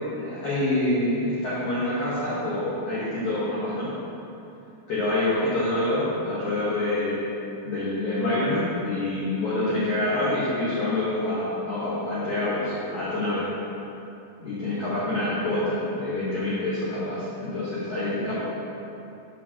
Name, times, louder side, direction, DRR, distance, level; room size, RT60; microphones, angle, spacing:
voice 1, 0.1-3.9 4.9-7.3 7.6-13.5 14.4-18.4, left 1 dB, 75° left, -11 dB, 1.7 m, -26 dB
12.5 x 4.6 x 2.9 m, 2.8 s
omnidirectional pair, 5.3 m